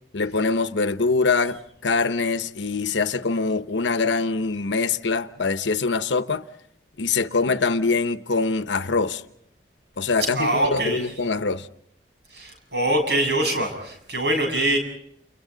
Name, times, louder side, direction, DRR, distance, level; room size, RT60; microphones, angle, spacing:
voice 1, 0.1-6.4 7.0-9.2 10.0-11.7, left 4 dB, 90° left, 1.0 m, -24 dB
voice 2, 10.3-11.0 12.3-14.8, right 1 dB, 65° right, 7.6 m, -23 dB
30.0 x 30.0 x 4.0 m
head